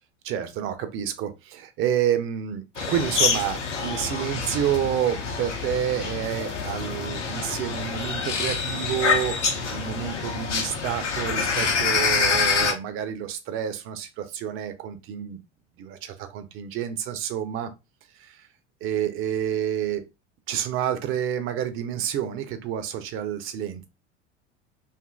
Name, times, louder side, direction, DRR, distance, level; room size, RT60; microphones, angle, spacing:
voice 1, 0.2-9.4 9.7-15.4 15.8-17.7 18.2-18.4 18.8-20.0 20.5-23.9, right 10 dB, 40° right, 0.5 m, -29 dB
sound 1, 2.8-12.7, left 5 dB, 85° left, 0.7 m, -26 dB
2.6 x 2.5 x 2.3 m
figure-of-eight pair, 75°, 35 cm